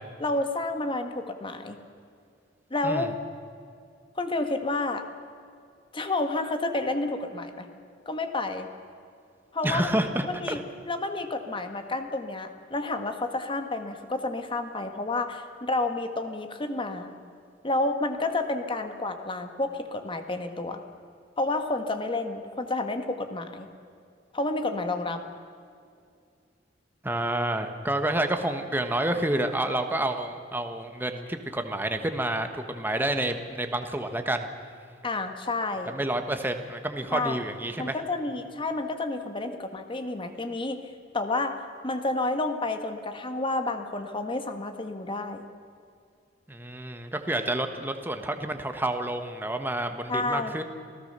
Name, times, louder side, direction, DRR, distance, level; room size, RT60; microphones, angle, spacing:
voice 1, 0.2-1.8 2.7-3.1 4.2-5.0 5.9-7.7 8.0-8.7 9.5-9.9 10.2-10.6 10.9-17.1 17.6-20.8 21.4-23.7 24.3-25.2 35.0-35.9 37.1-37.4 37.8-45.5 50.1-50.6, left 2 dB, 30° left, 7 dB, 1.5 m, -30 dB
voice 2, 9.6-10.6 27.0-34.5 35.8-38.0 46.5-50.6, right 1 dB, 10° right, 6 dB, 1.3 m, -29 dB
27.5 x 17.0 x 6.8 m, 2.4 s
head